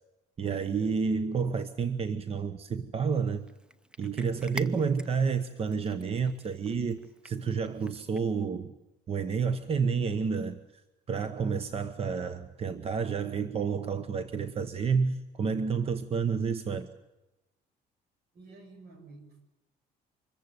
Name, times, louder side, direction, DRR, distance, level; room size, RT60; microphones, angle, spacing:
voice 1, 0.4-3.5 4.0-8.7 9.1-10.8 11.1-16.9, right 5 dB, 35° right, 12 dB, 1.0 m, -30 dB
Cat, 3.2-8.5, right 1 dB, 5° right, 0.7 m, -47 dB
voice 2, 18.3-19.4, right 3 dB, 70° right, 6 dB, 6.3 m, -51 dB
25.0 x 14.5 x 9.5 m, 1.0 s
cardioid pair, 110°, 17 cm